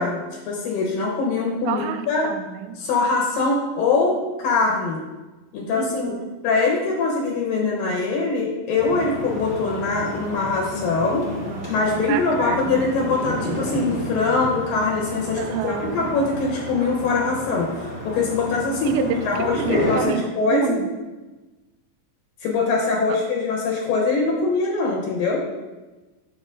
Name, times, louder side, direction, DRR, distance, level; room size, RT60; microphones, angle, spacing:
voice 1, 0.0-2.3 2.8-5.0 5.5-6.1 6.4-11.3 11.7-20.8 22.4-25.4, left 3 dB, 75° left, -1 dB, 2.4 m, -23 dB
voice 2, 1.7-2.8 5.7-6.3 11.5-12.8 15.4-16.1 18.8-20.9, right 7 dB, 90° right, 8 dB, 2.4 m, -29 dB
sound 1, 8.8-20.0, equal, 60° left, 0.6 m, -31 dB
6.8 x 6.7 x 2.4 m, 1.2 s
omnidirectional pair, 4.3 m